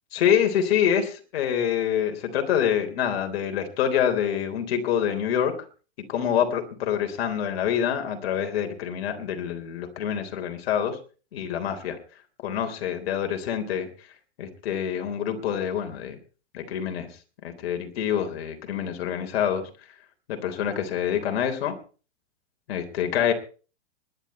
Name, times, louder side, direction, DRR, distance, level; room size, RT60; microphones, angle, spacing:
voice 1, 0.1-5.6 6.1-11.0 11.3-12.0 12.4-13.9 14.4-16.2 16.5-17.1 17.4-19.7 20.3-21.8 22.7-23.3, left 9 dB, 60° left, 6 dB, 3.7 m, -26 dB
19.5 x 11.5 x 4.3 m, 0.37 s
hypercardioid pair, 145°, 34 cm